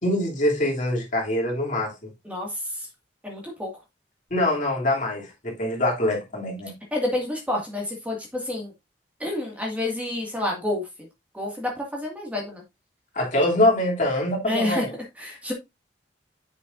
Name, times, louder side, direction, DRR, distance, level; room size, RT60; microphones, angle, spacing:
voice 1, 0.0-2.1 4.3-6.7 13.1-14.9, left 1 dB, 45° left, 2.9 m, -24 dB
voice 2, 2.2-2.9 3.2-3.7 6.9-8.7 9.2-10.9 11.3-12.6 14.5-14.8 15.2-15.5, left 1 dB, 10° right, 2.0 m, -29 dB
7.8 x 6.8 x 2.6 m
head